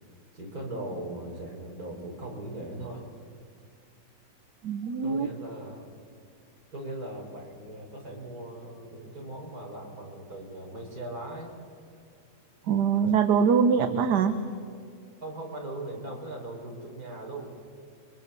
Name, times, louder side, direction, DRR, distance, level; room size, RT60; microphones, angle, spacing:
voice 1, 0.3-3.1 5.0-5.9 6.7-11.5 15.2-17.5, right 1 dB, 55° right, 0 dB, 4.8 m, -39 dB
voice 2, 4.6-5.3 12.7-14.3, right 6 dB, 70° right, 9 dB, 1.5 m, -23 dB
30.0 x 24.0 x 6.9 m, 2.2 s
omnidirectional pair, 1.9 m